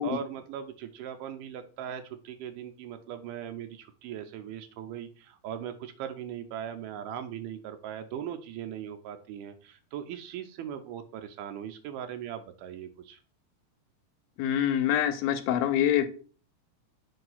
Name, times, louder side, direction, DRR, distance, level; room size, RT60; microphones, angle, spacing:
voice 1, 0.0-13.2, right 9 dB, 85° right, 8 dB, 1.8 m, -39 dB
voice 2, 14.4-16.1, left 10 dB, 80° left, 9 dB, 2.3 m, -25 dB
7.7 x 2.6 x 5.5 m, 0.39 s
omnidirectional pair, 4.3 m